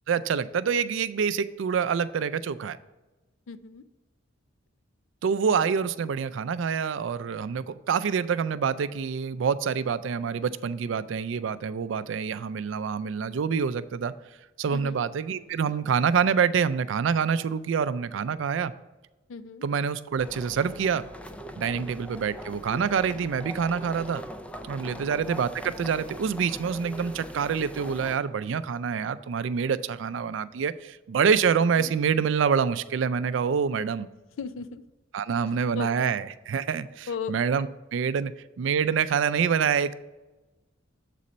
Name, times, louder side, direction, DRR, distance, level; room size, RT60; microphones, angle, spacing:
voice 1, 0.1-2.8 5.2-14.1 14.6-18.7 19.6-21.0 21.6-24.2 24.7-34.1 35.1-38.3 38.6-39.9, right 6 dB, 70° right, 13 dB, 0.4 m, -26 dB
voice 2, 3.5-3.8 14.7-15.0 19.3-19.6 21.7-21.8 24.8-25.1 31.8-31.9 34.4-34.8 35.7-36.1 37.1-37.3, left 5 dB, 80° left, 14 dB, 0.4 m, -36 dB
sound 1, 20.2-28.2, equal, 5° left, 0.3 m, -41 dB
7.6 x 4.2 x 5.1 m, 1.1 s
head